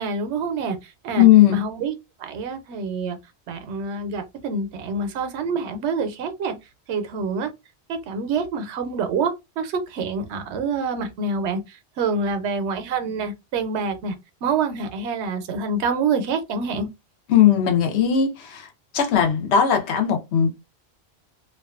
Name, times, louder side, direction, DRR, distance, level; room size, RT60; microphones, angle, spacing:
voice 1, 0.0-1.9 2.2-3.2 3.5-6.5 6.9-7.5 7.9-14.1 14.4-16.9, right 4 dB, 85° right, 0.9 m, -26 dB
voice 2, 1.2-1.6 17.3-18.7 18.9-20.5, left 9 dB, 80° left, 0.9 m, -17 dB
2.4 x 2.2 x 2.3 m
omnidirectional pair, 1.1 m